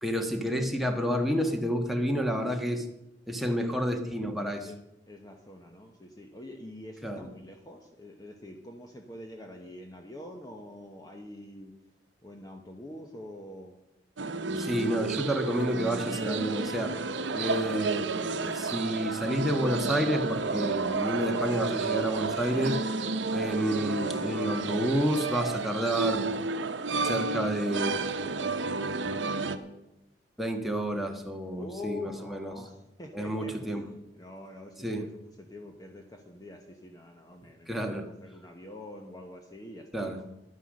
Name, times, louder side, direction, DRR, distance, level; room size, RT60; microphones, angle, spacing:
voice 1, 0.0-2.8 3.3-4.7 7.0-7.3 14.6-16.9 17.3-22.9 23.3-26.2 27.0-28.0 29.0-29.2 30.4-32.6 33.1-33.9 34.8-35.1 37.7-38.1 39.9-40.2, equal, ahead, 2 dB, 1.3 m, -30 dB
voice 2, 5.1-11.7 12.2-13.7 14.3-14.4 31.6-35.1 35.4-40.2, left 1 dB, 20° left, 3 dB, 1.0 m, -45 dB
sound 1, 14.2-29.6, right 4 dB, 80° right, 0.9 m, -31 dB
11.5 x 9.8 x 6.4 m, 0.89 s
head